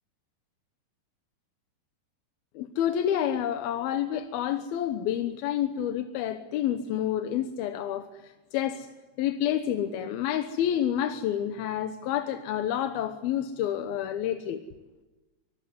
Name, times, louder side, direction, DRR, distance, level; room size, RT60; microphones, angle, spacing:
voice 1, 2.6-8.9 9.2-14.6, left 10 dB, 85° left, 8 dB, 2.9 m, -29 dB
25.0 x 21.5 x 9.7 m, 1.2 s
omnidirectional pair, 4.3 m